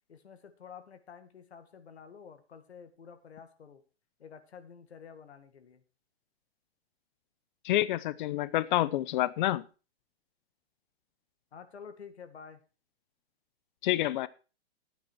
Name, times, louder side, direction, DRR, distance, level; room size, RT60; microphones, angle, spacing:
voice 1, 0.1-3.8 4.2-5.8 11.5-12.6, left 6 dB, 85° left, 9 dB, 2.0 m, -50 dB
voice 2, 7.6-9.6 13.8-14.3, left 15 dB, 50° left, 18 dB, 0.7 m, -28 dB
12.0 x 9.4 x 4.5 m, 0.34 s
hypercardioid pair, 135°, 32 cm